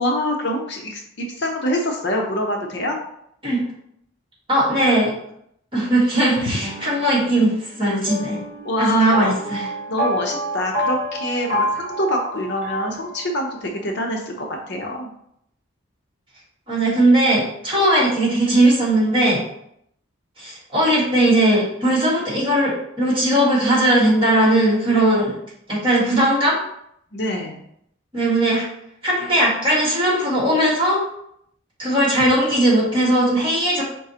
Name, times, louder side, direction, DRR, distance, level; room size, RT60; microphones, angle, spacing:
voice 1, 0.0-3.0 8.6-9.3 9.9-15.1 27.1-27.6, left 1 dB, 55° left, 2 dB, 0.6 m, -25 dB
voice 2, 4.5-5.1 5.7-8.4 8.8-9.7 16.7-19.4 20.4-25.4 25.7-26.6 28.1-28.6 29.0-31.0 31.8-33.8, right 1 dB, 25° right, -7 dB, 1.8 m, -18 dB
sound 1, 6.6-13.6, equal, 40° right, 1.5 m, -28 dB
4.8 x 3.7 x 2.8 m, 0.73 s
head